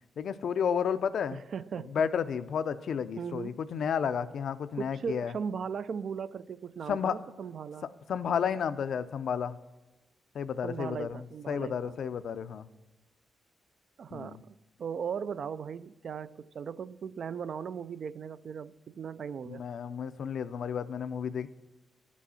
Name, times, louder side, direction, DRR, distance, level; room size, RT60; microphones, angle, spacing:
voice 1, 0.2-1.4 1.9-5.3 6.9-7.2 8.1-9.6 10.3-11.2 11.5-12.7 14.1-14.4 19.5-21.5, left 7 dB, 65° left, 0.5 m, -32 dB
voice 2, 1.3-2.1 3.2-3.6 4.8-7.9 10.6-12.0 14.0-19.7, right 6 dB, 55° right, 0.3 m, -38 dB
11.5 x 6.2 x 5.6 m
cardioid pair, 125°, 0 cm